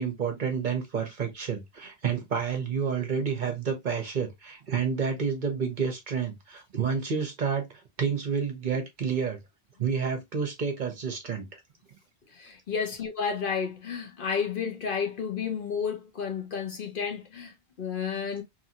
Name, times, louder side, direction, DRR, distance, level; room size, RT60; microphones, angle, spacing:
voice 1, 0.0-7.7 8.0-9.4 9.8-11.5, right 6 dB, 50° right, 0.8 m, -29 dB
voice 2, 12.3-18.4, left 6 dB, 55° left, 0.9 m, -31 dB
2.8 x 2.6 x 2.6 m
omnidirectional pair, 1.1 m